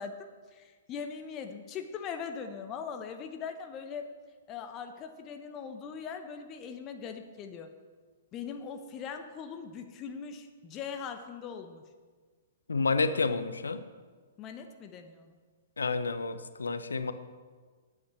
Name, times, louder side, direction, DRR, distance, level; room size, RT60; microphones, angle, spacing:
voice 1, 0.0-4.1 4.5-7.7 8.3-11.8 14.4-15.4, left 6 dB, 30° left, 7 dB, 0.8 m, -41 dB
voice 2, 12.7-13.8 15.8-17.1, left 4 dB, 75° left, 12 dB, 0.7 m, -29 dB
9.3 x 8.5 x 5.9 m, 1.5 s
figure-of-eight pair, 115°, 0 cm